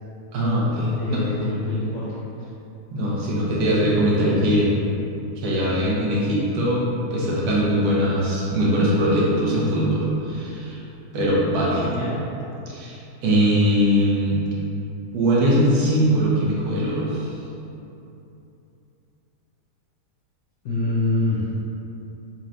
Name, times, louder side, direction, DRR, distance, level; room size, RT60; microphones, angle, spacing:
voice 1, 0.3-1.2 2.9-4.7 5.4-6.9 7.1-10.8 11.1-11.9 12.7-14.4 15.1-17.3, equal, 70° right, -6 dB, 1.2 m, -21 dB
voice 2, 1.0-2.2 11.6-12.2 20.6-21.5, left 2 dB, 65° left, -9 dB, 0.7 m, -25 dB
4.3 x 3.0 x 2.5 m, 2.8 s
omnidirectional pair, 1.8 m